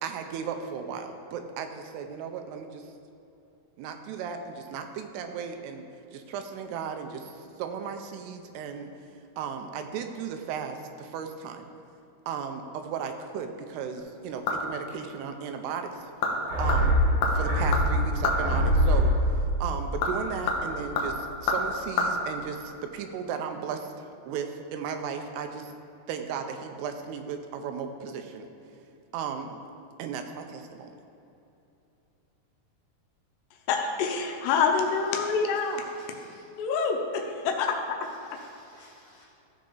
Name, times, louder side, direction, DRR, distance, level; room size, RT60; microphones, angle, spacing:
voice 1, 0.0-2.8 3.8-5.8 6.1-8.9 9.4-11.7 12.3-16.1 16.6-16.9 17.3-19.1 19.6-23.9 24.2-25.7 26.1-28.5 29.1-29.6 30.0-30.9, right 6 dB, 85° right, 2.7 m, -35 dB
sound 1, 14.0-14.9 15.2-15.3 15.9-16.4 16.7-18.5 19.7-22.1 22.4-22.5, left 3 dB, 70° left, 2.2 m, -29 dB
sound 2, 16.5-21.1 21.4-21.5, equal, 65° right, 3.5 m, -25 dB
voice 2, 33.7-35.8 36.6-38.0, left 5 dB, 90° left, 2.9 m, -26 dB
voice 3, 34.8-36.4 38.0-39.2, equal, 45° right, 1.9 m, -51 dB
14.0 x 5.1 x 3.8 m
omnidirectional pair, 4.7 m